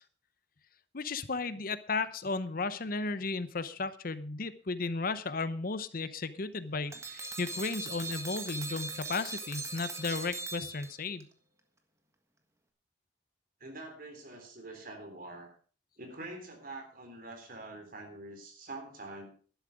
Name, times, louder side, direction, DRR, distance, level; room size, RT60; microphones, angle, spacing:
voice 1, 0.9-11.3, left 3 dB, 55° left, 13 dB, 0.8 m, -34 dB
sound 1, 6.9-11.2, right 3 dB, 15° right, 1.5 m, -40 dB
voice 2, 13.6-15.5 16.0-19.3, right 2 dB, 50° right, 4 dB, 3.7 m, -45 dB
11.5 x 11.5 x 4.9 m, 0.40 s
head